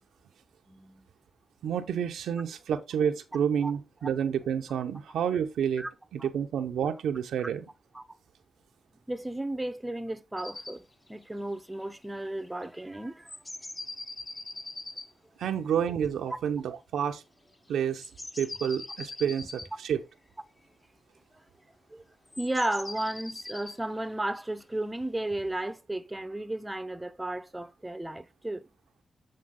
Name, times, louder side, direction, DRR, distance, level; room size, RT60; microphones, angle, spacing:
voice 1, 0.7-1.1 3.6-3.7 5.8-5.9 6.2-6.3 7.4-7.5 7.9-8.0 9.1-10.8 11.1-13.3 16.3-16.4 21.9-22.0 22.4-28.6, right 1 dB, 15° right, 0.7 m, -34 dB
voice 2, 1.6-5.9 6.1-7.6 15.4-17.2 17.7-18.1 18.4-20.0, right 8 dB, 90° right, 0.7 m, -29 dB
sound 1, 10.4-10.8 11.1-11.2 11.4-11.5 11.7-12.8 13.2-15.1 17.7-19.7 22.3-25.4, left 2 dB, 30° left, 1.1 m, -42 dB
7.6 x 3.9 x 3.7 m
cardioid pair, 55°, 0 cm